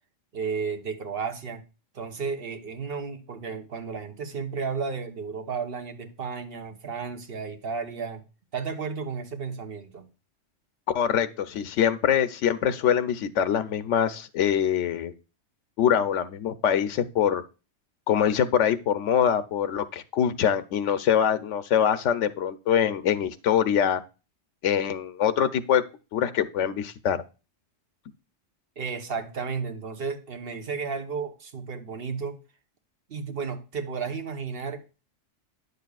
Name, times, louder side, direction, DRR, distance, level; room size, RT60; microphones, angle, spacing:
voice 1, 0.3-1.6 1.9-8.2 8.5-10.1 28.8-32.4 33.1-35.0, right 5 dB, 55° right, 1.2 m, -33 dB
voice 2, 10.9-15.1 15.8-17.4 18.1-24.0 24.6-25.8 26.1-27.2, left 9 dB, 85° left, 1.0 m, -24 dB
9.8 x 6.6 x 2.3 m
omnidirectional pair, 1.2 m